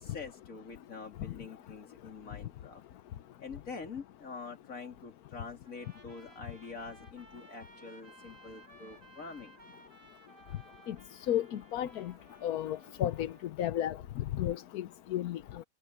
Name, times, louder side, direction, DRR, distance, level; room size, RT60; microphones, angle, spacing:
voice 1, 0.0-2.8 3.4-9.6, left 4 dB, 50° left, 3.4 m, -45 dB
Trumpet, 5.7-13.6, right 2 dB, 65° right, 6.5 m, -58 dB
voice 2, 11.3-12.1 12.4-13.3 13.6-15.6, left 12 dB, 65° left, 1.1 m, -33 dB
omnidirectional pair, 1.9 m